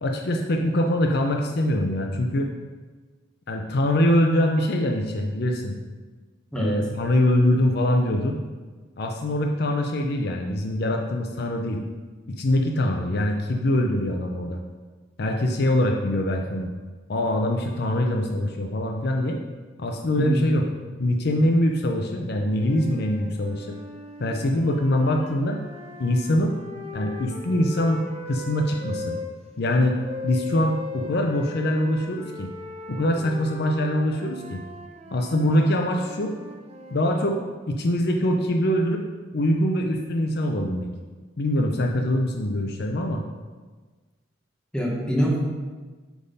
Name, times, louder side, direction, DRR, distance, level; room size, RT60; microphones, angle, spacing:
voice 1, 0.0-2.5 3.5-5.8 6.5-8.4 9.0-11.8 12.3-14.6 15.2-16.7 17.1-19.4 19.8-20.6 21.0-23.7 24.2-25.6 26.0-26.5 26.9-29.2 29.6-30.0 30.2-32.5 32.9-34.6 35.1-36.3 36.9-37.4 37.7-39.0 39.3-40.9 41.4-43.2, left 1 dB, 55° left, 2 dB, 0.6 m, -23 dB
voice 2, 20.2-20.5 44.7-45.4, equal, 5° left, -4 dB, 1.2 m, -24 dB
sound 1, 22.3-29.3 30.0-37.2, left 2 dB, 35° right, 0.7 m, -39 dB
8.0 x 3.6 x 5.3 m, 1.4 s
head